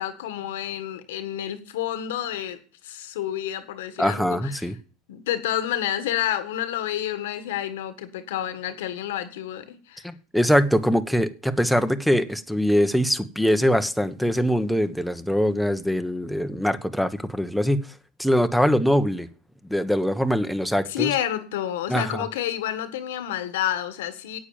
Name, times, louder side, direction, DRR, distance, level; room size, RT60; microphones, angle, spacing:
voice 1, 0.0-2.6 2.8-4.7 5.1-10.1 20.9-24.4, left 11 dB, 85° left, 1.6 m, -29 dB
voice 2, 4.0-4.8 10.0-17.9 18.2-19.3 19.6-21.1 21.9-22.2, equal, ahead, 1.2 m, -23 dB
9.8 x 8.9 x 7.1 m
supercardioid pair, 105°, 0 cm